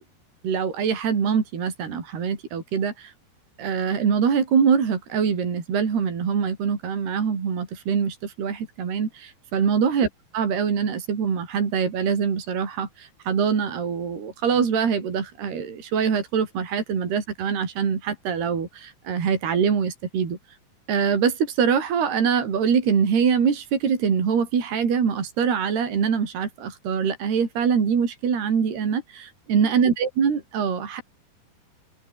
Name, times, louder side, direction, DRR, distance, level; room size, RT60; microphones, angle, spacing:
voice 1, 0.4-3.1 3.6-20.4 20.9-31.0, right 6 dB, 75° right, 6.4 m, -24 dB
open air
omnidirectional pair, 4.7 m